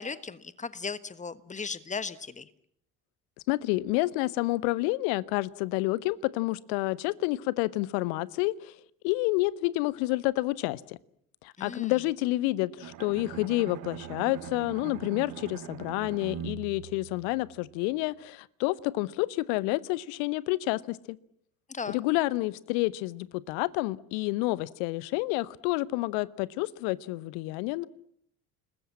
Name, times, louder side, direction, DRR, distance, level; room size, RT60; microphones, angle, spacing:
voice 1, 0.0-2.5 11.6-11.9 21.7-22.0, left 5 dB, 15° left, 16 dB, 1.3 m, -37 dB
voice 2, 3.5-8.7 9.0-11.0 11.4-21.2 21.9-27.9, left 20 dB, 55° left, 21 dB, 0.9 m, -29 dB
Bowed string instrument, 12.8-17.8, right 11 dB, 45° right, 1.7 m, -42 dB
30.0 x 20.0 x 7.4 m, 0.71 s
figure-of-eight pair, 55°, 43 cm